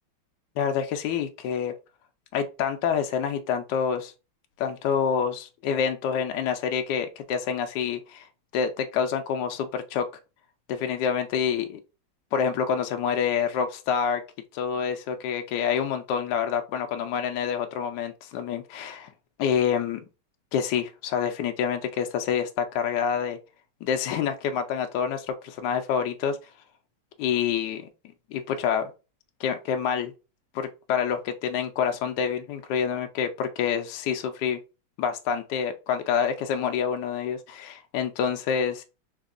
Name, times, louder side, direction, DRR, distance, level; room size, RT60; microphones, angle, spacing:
voice 1, 0.6-1.7 2.3-4.1 4.6-8.3 8.5-10.1 10.7-11.8 12.3-14.2 14.5-19.1 19.4-20.0 20.5-23.4 23.8-26.4 27.2-27.8 28.3-28.9 29.4-30.1 30.5-34.6 35.0-38.8, left 7 dB, 75° left, 1.0 m, -27 dB
4.1 x 2.9 x 2.5 m
omnidirectional pair, 2.3 m